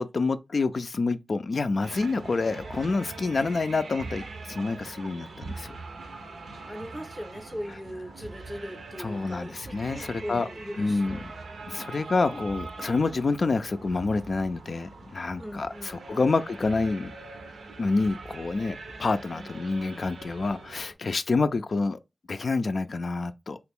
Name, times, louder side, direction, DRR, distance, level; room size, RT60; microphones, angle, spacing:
voice 1, 0.0-5.8 9.0-10.5 10.8-11.3 11.7-17.1 17.8-22.0 22.3-23.6, left 3 dB, 60° left, 0.3 m, -28 dB
sound 1, 1.8-20.9, right 3 dB, 90° right, 0.6 m, -42 dB
voice 2, 6.6-11.5 15.4-16.3 19.3-19.6, equal, 10° left, 0.6 m, -40 dB
2.9 x 2.4 x 3.6 m
cardioid pair, 60°, 0 cm